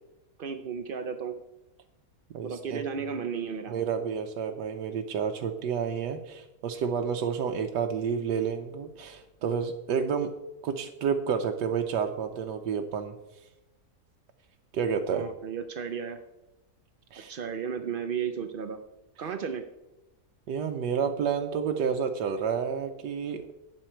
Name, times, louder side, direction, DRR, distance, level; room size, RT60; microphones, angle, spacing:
voice 1, 0.4-1.4 2.4-3.7 15.1-16.2 17.3-18.8 19.2-19.6, right 6 dB, 70° right, 7 dB, 0.5 m, -34 dB
voice 2, 2.3-2.8 3.7-10.3 10.6-13.1 14.7-15.3 17.1-17.4 20.5-23.4, right 7 dB, 90° right, 4 dB, 1.4 m, -30 dB
12.0 x 8.7 x 4.4 m, 0.98 s
omnidirectional pair, 1.8 m